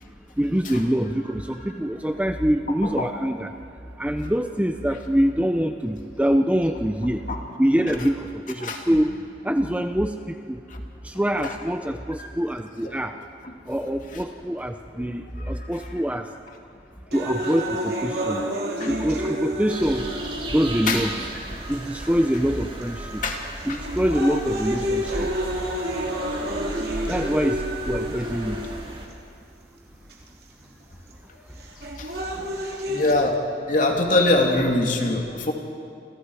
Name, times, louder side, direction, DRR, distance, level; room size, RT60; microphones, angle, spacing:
voice 1, 0.4-3.5 4.0-7.2 7.6-8.2 8.5-9.1 9.4-10.1 10.5-10.6 11.0-13.1 13.7-16.3 17.1-18.4 18.9-20.1 20.5-21.1 21.7-23.2 23.7-25.3 27.1-27.6 27.9-28.6, equal, 10° right, 7 dB, 0.6 m, -24 dB
sound 1, 17.1-21.1 21.9-22.0 22.8-23.1 23.6-29.1 30.1-30.2 31.6-33.1, equal, 60° right, 3.0 m, -29 dB
voice 2, 18.6-18.9 20.9-21.0 23.2-23.4 23.7-23.8 32.0-32.1 32.3-32.5 32.9-33.4 33.7-35.5, left 2 dB, 45° left, 1 dB, 2.8 m, -23 dB
sound 2, 19.7-29.1, right 1 dB, 30° right, 3.0 m, -36 dB
28.5 x 27.0 x 4.9 m, 2.4 s
head